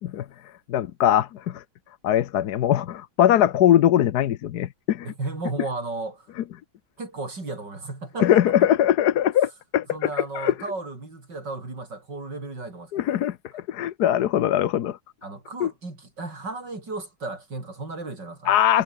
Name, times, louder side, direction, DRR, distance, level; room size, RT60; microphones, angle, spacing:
voice 1, 0.7-1.6 2.0-5.1 8.2-10.1 10.3-10.5 12.9-15.0 15.6-15.7 18.5-18.8, left 11 dB, 60° left, 1.2 m, -21 dB
voice 2, 5.0-6.3 7.0-8.7 9.9-13.2 13.5-13.6 15.2-18.6, right 3 dB, 55° right, 6.5 m, -34 dB
omnidirectional pair, 2.3 m